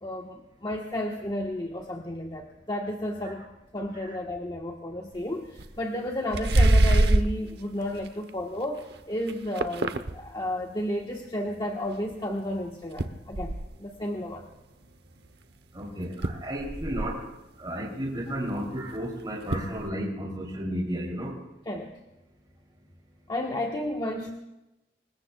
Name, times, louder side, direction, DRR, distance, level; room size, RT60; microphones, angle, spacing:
voice 1, 0.0-14.5 21.7-21.9 23.3-24.3, left 1 dB, 25° left, 0 dB, 1.2 m, -32 dB
sound 1, 5.1-5.2 5.6-5.8 6.3-7.4 7.9-8.3 8.8-8.9 9.3-10.2 12.1-12.2 13.0-13.7 15.2-15.3 15.7-15.8 16.0-17.2 18.9-19.0 19.5-19.9, right 1 dB, 70° right, 0.9 m, -24 dB
voice 2, 15.7-17.2 17.6-21.3, equal, 25° right, -3 dB, 3.0 m, -33 dB
26.5 x 20.5 x 2.3 m, 0.95 s
head